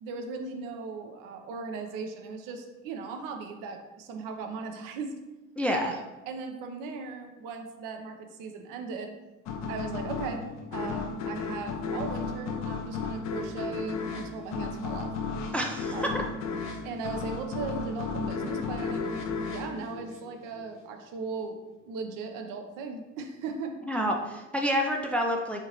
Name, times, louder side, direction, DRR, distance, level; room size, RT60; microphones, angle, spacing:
voice 1, 0.0-5.1 5.7-9.1 9.7-10.4 10.7-15.1 15.9-16.3 16.8-21.6 21.9-23.8, right 4 dB, 55° right, 4 dB, 0.7 m, -38 dB
voice 2, 5.6-5.9 15.5-16.1 23.9-25.6, equal, 5° left, 1 dB, 0.4 m, -28 dB
sound 1, 9.5-20.7, left 5 dB, 45° left, 0.7 m, -34 dB
4.4 x 3.7 x 3.0 m, 1.1 s
figure-of-eight pair, 55°, 38 cm